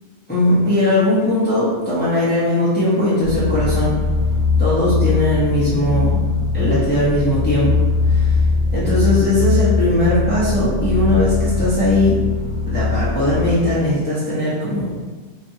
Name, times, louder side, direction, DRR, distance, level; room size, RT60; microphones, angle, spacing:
voice 1, 0.3-4.0 4.6-6.2 6.5-7.7 8.1-8.4 8.7-12.2 12.7-14.9, left 1 dB, 10° left, -10 dB, 1.0 m, -19 dB
sound 1, 3.2-13.5, left 3 dB, 45° left, 0.7 m, -20 dB
4.2 x 3.0 x 2.8 m, 1.4 s
omnidirectional pair, 1.3 m